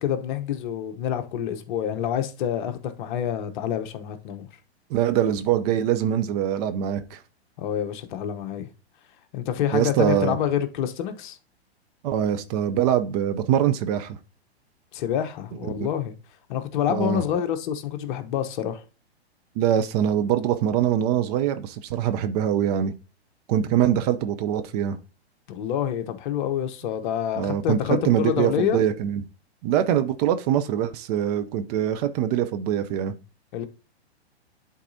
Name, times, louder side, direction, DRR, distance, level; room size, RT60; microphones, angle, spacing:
voice 1, 0.0-4.5 7.6-8.7 9.3-11.4 14.9-16.1 16.5-18.8 25.5-28.8 33.5-33.7, left 10 dB, 45° left, 1.0 m, -27 dB
voice 2, 4.9-7.2 9.7-10.4 12.0-14.2 15.7-15.9 16.9-17.2 19.6-22.9 23.5-25.0 27.4-29.2 29.6-33.2, right 10 dB, 35° right, 0.7 m, -23 dB
11.0 x 4.1 x 2.7 m
hypercardioid pair, 120°, 33 cm